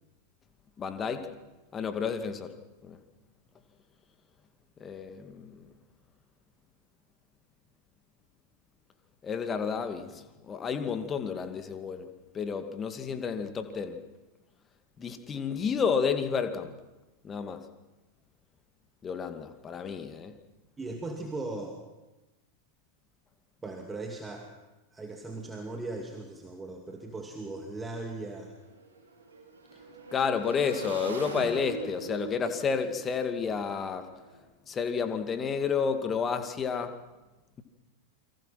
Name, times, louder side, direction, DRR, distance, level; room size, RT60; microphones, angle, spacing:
voice 1, 0.8-1.3 1.7-2.5 2.8-3.0 4.8-5.5 9.2-12.1 12.3-14.0 15.0-16.7 17.2-17.6 19.0-20.3 30.1-34.1 34.7-36.9, left 6 dB, 20° left, 8 dB, 2.3 m, -31 dB
voice 2, 20.8-21.8 23.6-24.5 24.9-28.5, right 2 dB, 15° right, 2 dB, 2.6 m, -38 dB
Motorcycle / Engine, 26.9-27.0 27.2-34.4, right 4 dB, 75° right, 5.2 m, -44 dB
29.0 x 24.0 x 5.9 m, 1.1 s
figure-of-eight pair, 90°, 0 cm